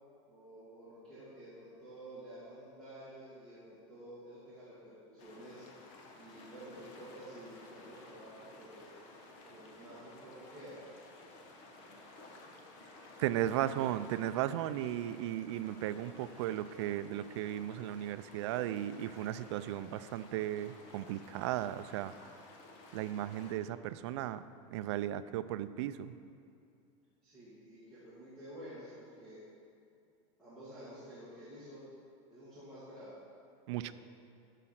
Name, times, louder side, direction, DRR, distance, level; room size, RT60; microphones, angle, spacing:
voice 1, 0.3-5.7 6.2-8.8 9.4-10.8 27.2-29.4 30.4-31.8 32.3-33.2 33.8-33.9, right 1 dB, 5° left, -14 dB, 2.0 m, -51 dB
sound 1, 5.2-23.5, left 2 dB, 50° left, 1.3 m, -55 dB
voice 2, 13.2-22.1 22.9-24.4 24.7-26.1 33.7-33.9, right 12 dB, 60° right, 13 dB, 0.4 m, -36 dB
13.0 x 5.0 x 5.8 m, 2.5 s
supercardioid pair, 180°, 17 cm